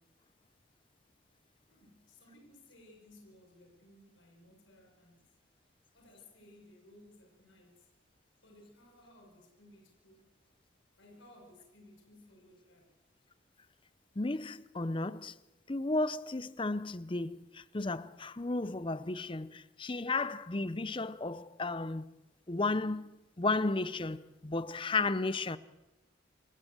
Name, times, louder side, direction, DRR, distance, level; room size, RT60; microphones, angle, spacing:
voice 1, 1.7-5.3 5.9-7.9 8.4-10.3 11.0-12.9, left 1 dB, 75° left, 5.5 m, -59 dB
voice 2, 14.2-15.3 15.7-22.1 22.5-25.6, left 3 dB, 25° left, 0.6 m, -34 dB
28.0 x 13.0 x 8.0 m
head